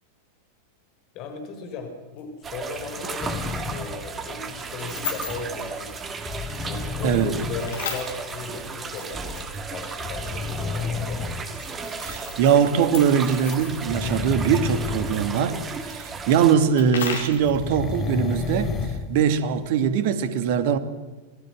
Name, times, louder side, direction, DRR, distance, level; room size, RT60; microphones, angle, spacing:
voice 1, 1.1-3.4 3.7-6.0 6.6-11.2, left 4 dB, 40° left, 5.4 m, -36 dB
sound 1, 2.2-2.3 4.7-5.6 7.6-9.8 11.4-14.1 15.7-17.6, left 6 dB, 60° left, 4.9 m, -36 dB
sound 2, 2.4-16.6, right 5 dB, 20° right, 2.7 m, -35 dB
sound 3, 3.2-3.9 6.2-7.7 9.1-9.2 10.0-11.4 12.1-12.2 13.6-15.3 15.6-15.7 17.4-19.1 19.6-19.7, left 4 dB, 20° left, 4.1 m, -30 dB
voice 2, 12.0-20.8, right 7 dB, 50° right, 2.3 m, -22 dB
28.0 x 20.0 x 6.3 m
figure-of-eight pair, 90°, 0 cm